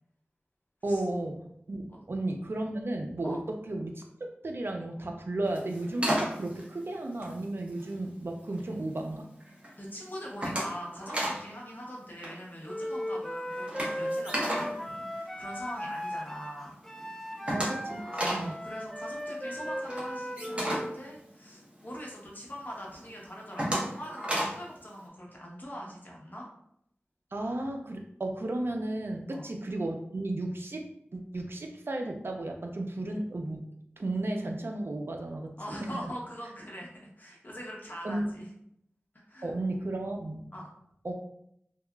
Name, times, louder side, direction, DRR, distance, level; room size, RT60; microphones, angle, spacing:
voice 1, 0.8-4.0 4.4-9.3 17.5-18.6 27.3-33.6 34.0-35.5 35.9-36.0 38.0-38.3 39.4-40.5 41.0-41.1, right 2 dB, 65° right, 3 dB, 0.4 m, -34 dB
sound 1, 5.5-8.0 8.4-9.0 9.4-9.7 10.0-11.5 11.7-11.9 12.2-15.9 16.3-16.4 16.7-16.8 17.0-22.0 22.4-22.5 23.0-24.7, equal, 25° right, 0.7 m, -34 dB
voice 2, 9.8-16.8 18.3-26.5 29.3-29.5 35.6-36.9 37.2-38.5 39.3-39.5 40.5-40.7, equal, 45° left, -3 dB, 0.8 m, -42 dB
Wind instrument woodwind instrument, 12.7-21.0, equal, 5° left, 0.3 m, -37 dB
2.8 x 2.3 x 2.2 m, 0.73 s
wide cardioid pair, 60°, 4 cm